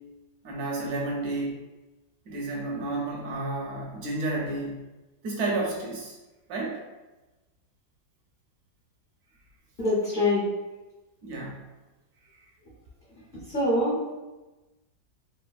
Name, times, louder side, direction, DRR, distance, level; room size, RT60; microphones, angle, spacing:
voice 1, 0.4-1.6 2.3-4.8 5.2-6.2 6.5-6.8 11.2-11.7, right 2 dB, 70° right, -2 dB, 0.9 m, -31 dB
voice 2, 9.8-10.4 13.5-14.0, left 1 dB, 50° left, -9 dB, 0.6 m, -24 dB
3.3 x 2.2 x 2.3 m, 1.1 s
omnidirectional pair, 2.0 m